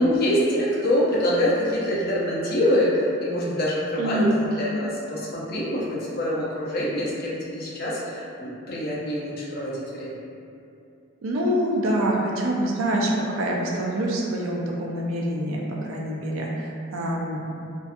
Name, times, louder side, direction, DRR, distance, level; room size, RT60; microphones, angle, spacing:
voice 1, 0.0-10.2, equal, 50° left, -7 dB, 0.6 m, -25 dB
voice 2, 4.0-4.4 11.2-17.7, right 1 dB, 80° right, -2 dB, 0.4 m, -25 dB
2.6 x 2.3 x 2.4 m, 2.6 s
head